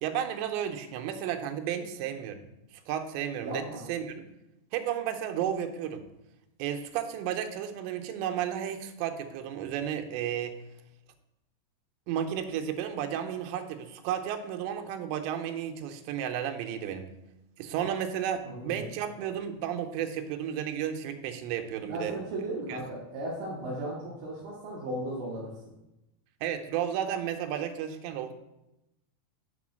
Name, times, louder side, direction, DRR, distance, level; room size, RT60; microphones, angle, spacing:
voice 1, 0.0-2.4 2.9-4.1 4.7-6.1 6.6-10.6 12.1-17.1 17.6-22.2 22.7-22.8 26.4-28.3, right 9 dB, 85° right, 6 dB, 2.9 m, -33 dB
voice 2, 3.4-3.8 18.4-18.9 21.8-25.5, right 1 dB, 65° right, -5 dB, 2.4 m, -36 dB
6.6 x 3.7 x 6.2 m, 0.92 s
omnidirectional pair, 5.0 m